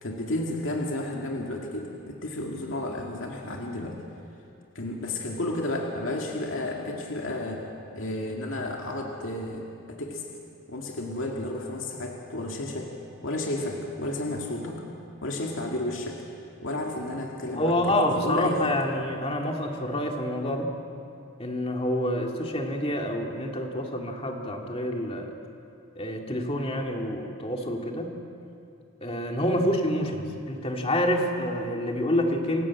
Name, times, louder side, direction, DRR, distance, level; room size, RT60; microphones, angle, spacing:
voice 1, 0.0-4.0 4.7-7.7 7.9-10.2 10.7-12.9 13.2-14.9 15.2-16.2 16.6-18.8, left 1 dB, 65° left, 0 dB, 2.2 m, -32 dB
voice 2, 17.6-20.7 21.4-25.3 26.0-28.2 29.0-32.6, left 1 dB, 25° left, 1 dB, 2.3 m, -27 dB
28.0 x 14.0 x 8.5 m, 2.6 s
head